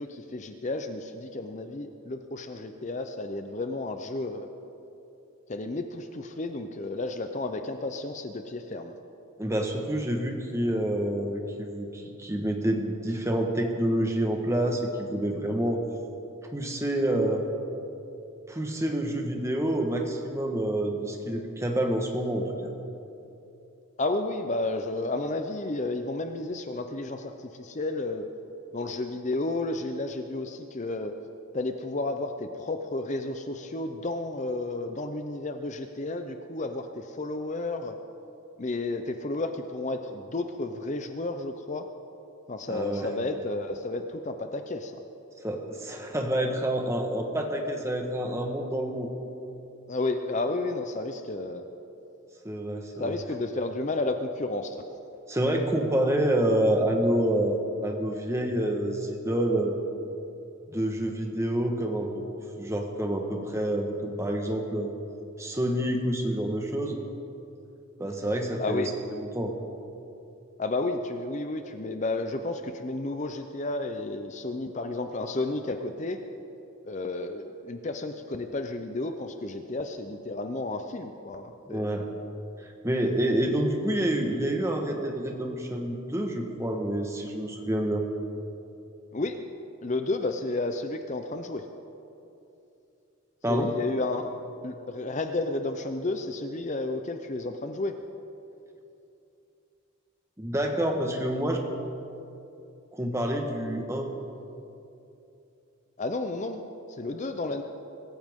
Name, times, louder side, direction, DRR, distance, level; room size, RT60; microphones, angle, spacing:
voice 1, 0.0-4.5 5.5-8.9 24.0-28.3 28.7-31.1 31.5-38.0 38.6-41.9 42.5-45.0 49.9-51.6 53.0-54.8 68.6-68.9 70.6-76.2 76.8-81.9 89.1-89.4 89.8-91.7 93.5-94.3 94.6-97.9 106.0-106.6 106.9-107.6, left 2 dB, 35° left, 7 dB, 0.6 m, -32 dB
voice 2, 9.4-15.8 16.5-17.5 18.5-22.7 42.7-43.1 45.4-49.1 52.4-53.1 55.3-59.8 60.7-62.2 62.6-64.9 65.4-67.0 68.0-69.5 81.7-82.1 82.6-88.1 93.4-93.7 100.4-101.6 102.9-104.1, right 1 dB, 15° right, 2 dB, 1.3 m, -28 dB
24.5 x 14.5 x 3.7 m, 2.8 s
head